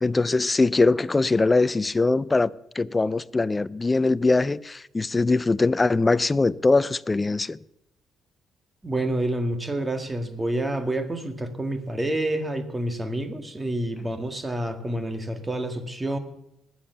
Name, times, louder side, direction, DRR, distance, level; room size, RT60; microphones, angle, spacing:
voice 1, 0.0-7.6 14.0-14.1, left 3 dB, 20° left, 0.5 m, -22 dB
voice 2, 8.8-16.2, right 1 dB, 20° right, 1.9 m, -28 dB
20.0 x 7.2 x 6.9 m
cardioid pair, 90°, 0 cm